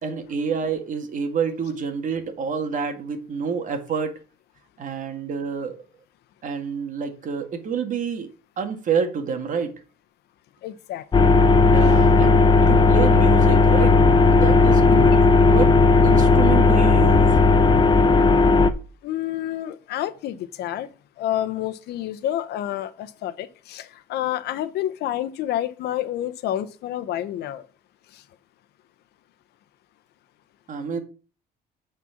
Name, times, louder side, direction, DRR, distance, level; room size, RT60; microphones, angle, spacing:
voice 1, 0.0-4.1 4.8-5.8 6.4-8.3 8.6-9.7 11.7-13.9 14.3-15.1 15.4-15.7 16.0-17.4 30.7-31.0, right 6 dB, 50° right, 2.0 m, -28 dB
voice 2, 10.6-11.3 14.8-15.3 19.0-20.9 21.2-27.7 28.1-28.2, left 12 dB, 75° left, 0.9 m, -29 dB
sound 1, 11.1-18.7, left 3 dB, 25° left, 0.7 m, -15 dB
8.6 x 4.5 x 7.2 m
cardioid pair, 110°, 17 cm